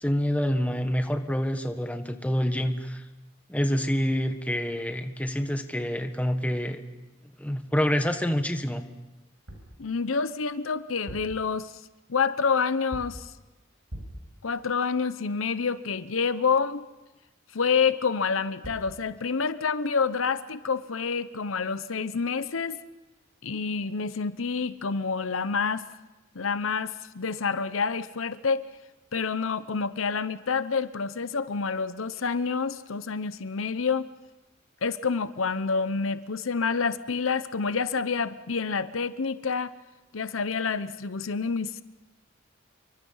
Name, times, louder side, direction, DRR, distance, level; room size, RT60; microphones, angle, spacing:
voice 1, 0.0-3.0 3.5-6.8 7.4-8.8, equal, 5° left, 6 dB, 1.4 m, -27 dB
sound 1, 9.5-9.8 10.9-11.5 12.9-13.3 13.9-14.3 18.3-18.4 18.6-19.0, equal, 90° right, 6.0 m, -41 dB
voice 2, 9.8-11.7 12.1-13.3 14.4-16.8 17.5-22.8 23.4-25.9 26.3-28.7 29.1-34.1 34.8-39.7 40.1-41.8, left 5 dB, 80° left, 13 dB, 0.8 m, -28 dB
28.5 x 24.0 x 5.6 m, 1.0 s
head